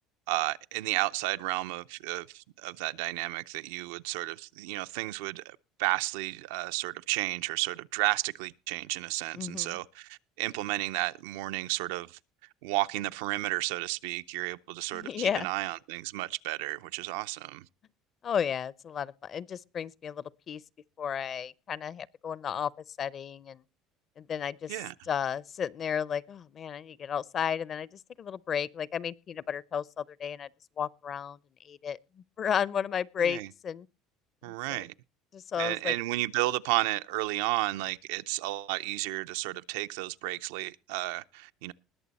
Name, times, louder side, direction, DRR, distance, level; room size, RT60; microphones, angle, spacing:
voice 1, 0.3-12.2 12.6-17.7 24.7-24.9 33.2-33.5 34.4-34.9 35.6-41.7, right 18 dB, 90° right, 0.5 m, -32 dB
voice 2, 9.4-9.8 14.9-15.5 18.2-20.6 21.0-22.7 23.0-23.6 24.2-24.8 25.1-30.5 30.8-33.9 34.4-34.8 35.3-35.9, left 8 dB, 40° left, 0.6 m, -33 dB
20.5 x 6.9 x 4.1 m
cardioid pair, 115°, 0 cm